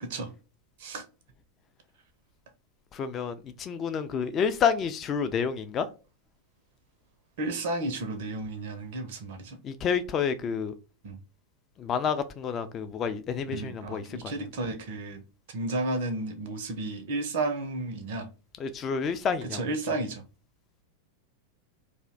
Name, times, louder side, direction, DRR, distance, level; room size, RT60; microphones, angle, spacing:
voice 1, 2.9-5.9 9.6-10.7 11.8-14.3 18.6-19.6, left 6 dB, 30° left, 0.3 m, -29 dB
voice 2, 7.4-9.6 11.0-11.2 13.5-15.2 15.5-18.3 19.4-20.2, right 2 dB, 50° right, 0.5 m, -32 dB
2.5 x 2.1 x 3.6 m
figure-of-eight pair, 90°, 0 cm